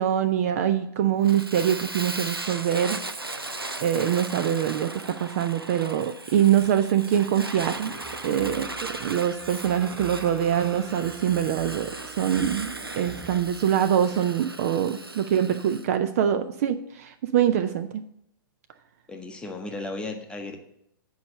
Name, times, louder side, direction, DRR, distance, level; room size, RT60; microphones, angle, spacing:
voice 1, 0.0-3.0 3.8-7.9 8.2-8.7 9.0-18.0, right 9 dB, 40° right, 10 dB, 0.5 m, -24 dB
Fire, 1.2-15.9, right 2 dB, 90° right, 0.6 m, -37 dB
sound 1, 7.5-14.3, right 4 dB, 20° right, 1.5 m, -44 dB
voice 2, 19.1-20.6, left 2 dB, 10° left, 4 dB, 0.9 m, -35 dB
8.2 x 4.8 x 6.6 m, 0.73 s
figure-of-eight pair, 110°, 12 cm